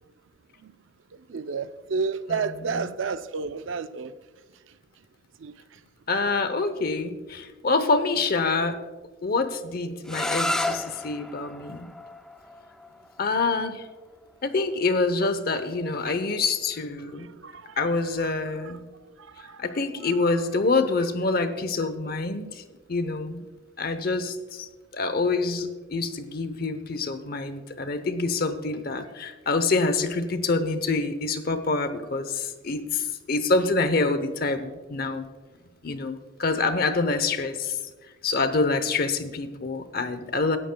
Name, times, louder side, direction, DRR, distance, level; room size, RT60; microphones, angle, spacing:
voice 1, 1.3-4.1 5.4-5.5 17.0-17.8 18.1-18.3 18.6-18.8 19.2-19.7 20.0-20.3, right 5 dB, 80° right, 12 dB, 0.5 m, -32 dB
voice 2, 6.1-8.8 9.2-11.9 13.2-13.9 14.4-17.3 17.8-18.9 19.6-22.6 22.9-23.5 23.8-35.3 35.8-37.8 38.2-40.6, left 3 dB, 50° left, 11 dB, 0.8 m, -26 dB
sound 1, 10.0-15.8, left 1 dB, 5° left, 0.4 m, -33 dB
19.0 x 11.0 x 2.3 m, 1.3 s
head